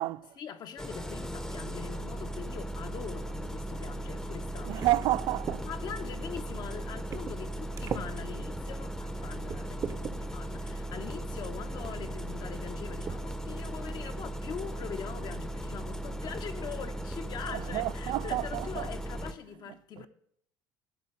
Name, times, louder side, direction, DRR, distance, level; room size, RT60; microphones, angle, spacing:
voice 1, 0.4-5.2 5.6-20.1, left 8 dB, 50° left, 1.0 m, -43 dB
Engine starting, 0.8-19.3, right 1 dB, 5° left, 0.8 m, -37 dB
voice 2, 4.6-5.6 17.5-18.9, right 17 dB, 60° right, 0.4 m, -30 dB
sound 1, 4.8-5.6 6.4-6.5 7.1-7.4 7.7-8.1 8.8-8.9 9.5-10.2 11.3-11.4 11.9-12.1 13.0-13.2 13.6-13.7 14.0-14.4, right 6 dB, 40° right, 0.8 m, -38 dB
12.0 x 4.0 x 7.7 m
supercardioid pair, 85°, 9 cm